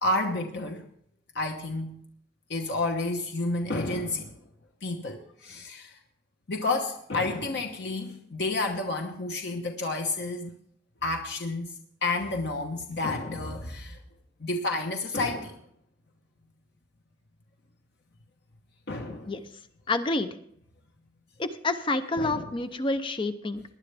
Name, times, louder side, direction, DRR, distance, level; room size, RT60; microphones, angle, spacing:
voice 1, 0.0-0.8 1.3-2.0 2.5-4.4 4.8-6.0 6.5-10.6 11.0-14.0 14.4-15.6 18.9-19.3 22.1-22.5, left 2 dB, 65° left, 3 dB, 1.1 m, -30 dB
voice 2, 19.9-20.3 21.4-23.6, left 2 dB, 30° left, 10 dB, 0.6 m, -28 dB
19.0 x 10.5 x 3.4 m, 0.70 s
head